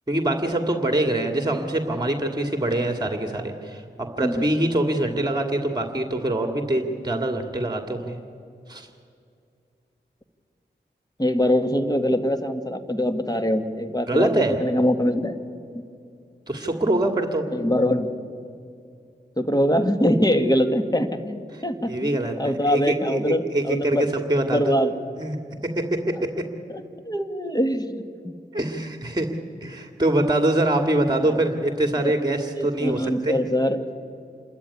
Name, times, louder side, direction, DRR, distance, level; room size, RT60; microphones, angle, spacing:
voice 1, 0.1-8.2 8.7-8.9 14.1-14.6 16.5-17.4 21.5-24.8 25.2-25.4 25.8-26.1 28.5-29.3 29.6-33.3, right 1 dB, 25° right, 5 dB, 2.1 m, -24 dB
voice 2, 11.2-14.3 14.6-15.4 17.5-18.1 19.4-24.1 24.4-25.0 26.7-28.0 32.0-32.1 32.6-33.8, equal, 20° left, 7 dB, 2.1 m, -23 dB
27.0 x 13.5 x 9.8 m, 2.4 s
cardioid pair, 50°, 18 cm